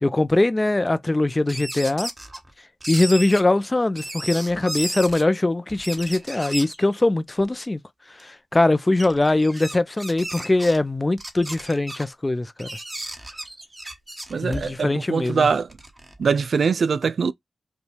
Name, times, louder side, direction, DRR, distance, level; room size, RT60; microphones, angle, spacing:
voice 1, 0.0-2.1 2.9-7.8 8.1-12.7 14.4-15.5, left 2 dB, 30° left, 0.5 m, -21 dB
sound 1, 1.5-2.5 2.8-3.4 4.0-5.2 5.7-6.9 7.4-7.5 8.2-8.3 9.0-10.8 11.2-12.0 12.6-14.9 15.5-16.3, right 1 dB, 25° right, 1.2 m, -34 dB
voice 2, 14.3-15.7 16.2-17.3, right 5 dB, 80° right, 0.3 m, -22 dB
5.2 x 2.3 x 3.2 m
cardioid pair, 60°, 0 cm